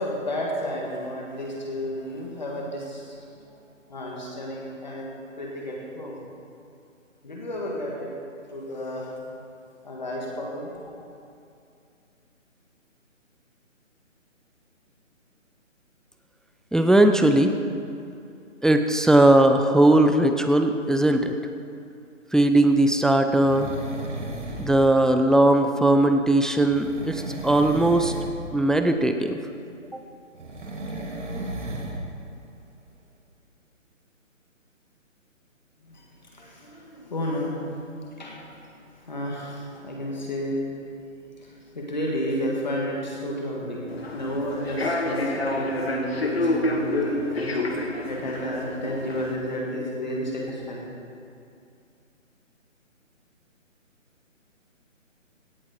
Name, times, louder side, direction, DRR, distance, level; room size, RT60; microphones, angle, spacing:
voice 1, 0.0-3.6 3.9-6.2 7.2-8.1 8.5-9.1 9.8-10.8 35.9-36.0 36.3-38.4 39.0-40.6 41.4-47.5 48.0-50.9, equal, 35° left, -3 dB, 1.7 m, -32 dB
voice 2, 16.7-17.5 18.6-21.3 22.3-23.7 24.6-28.1 28.5-29.4, right 1 dB, ahead, 7 dB, 0.3 m, -19 dB
sound 1, 23.3-24.8 26.6-28.4 30.3-32.0 32.4-32.5, right 1 dB, 60° right, 2.3 m, -34 dB
Human voice / Subway metro underground, 43.9-49.4, left 1 dB, 50° left, 1.6 m, -28 dB
17.0 x 7.3 x 5.2 m, 2.5 s
hypercardioid pair, 180°, 39 cm